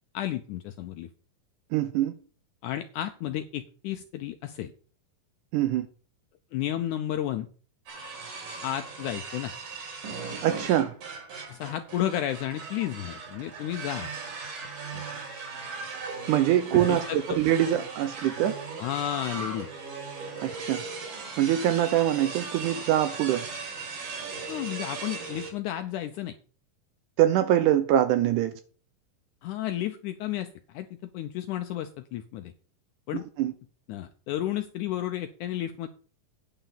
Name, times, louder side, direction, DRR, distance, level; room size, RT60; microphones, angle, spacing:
voice 1, 0.1-1.1 2.6-4.7 6.5-7.5 8.6-9.5 11.5-14.1 14.9-15.1 16.7-17.4 18.8-19.7 24.5-26.3 29.4-32.5 33.1-33.3 33.9-35.9, left 12 dB, 80° left, 1.8 m, -32 dB
voice 2, 1.7-2.1 5.5-5.9 10.4-10.9 16.3-18.5 20.4-20.8 21.4-23.5 27.2-28.5 33.4-33.5, right 12 dB, 80° right, 1.9 m, -24 dB
sound 1, 7.9-25.5, right 4 dB, 60° right, 3.8 m, -38 dB
9.5 x 5.7 x 6.9 m
omnidirectional pair, 4.1 m